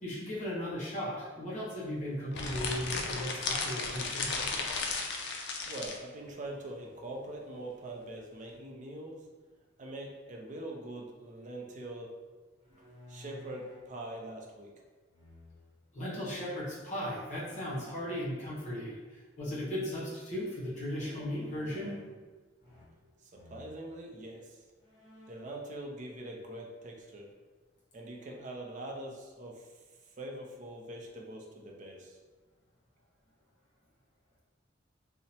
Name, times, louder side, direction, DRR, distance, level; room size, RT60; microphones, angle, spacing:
voice 1, 0.0-4.4 15.9-22.0, equal, 40° left, -6 dB, 0.8 m, -37 dB
sound 1, 2.3-6.0, left 4 dB, 60° left, 0.3 m, -35 dB
voice 2, 5.7-9.3 9.8-12.1 12.7-14.7 23.2-24.6 25.3-27.3 27.9-29.7 30.2-32.2, right 1 dB, 40° right, 0 dB, 0.4 m, -43 dB
sound 2, 12.6-13.9 15.1-15.8 17.3-17.9 20.8-22.2 22.6-23.1 23.3-23.8 24.4-24.5 24.8-25.6, left 2 dB, 20° right, 1.2 m, -54 dB
2.8 x 2.0 x 2.7 m, 1.4 s
head